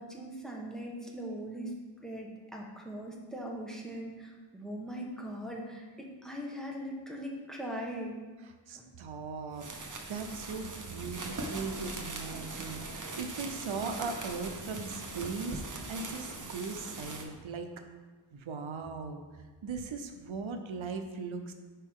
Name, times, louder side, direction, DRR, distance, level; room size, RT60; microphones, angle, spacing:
voice 1, 0.0-1.7 2.0-8.2 8.7-8.8, equal, ahead, -2 dB, 1.2 m, -40 dB
voice 2, 8.7-17.7 18.3-19.2 19.6-21.5, right 4 dB, 90° right, 6 dB, 0.8 m, -39 dB
sound 1, 9.5-17.2, right 2 dB, 40° right, 1.0 m, -41 dB
10.0 x 4.6 x 3.7 m, 1.3 s
wide cardioid pair, 105°, 46 cm